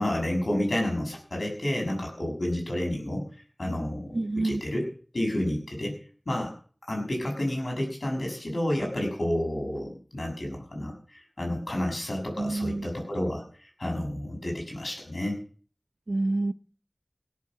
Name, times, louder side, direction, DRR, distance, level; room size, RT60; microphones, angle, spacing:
voice 1, 0.0-3.2 3.6-4.9 5.1-5.9 6.3-6.5 6.9-13.4 13.8-15.4, left 1 dB, 90° left, 6.4 m, -30 dB
voice 2, 4.1-4.6 12.4-12.9 16.1-16.5, right 2 dB, 85° right, 0.6 m, -27 dB
17.0 x 7.8 x 7.4 m
wide cardioid pair, 40°, 0 cm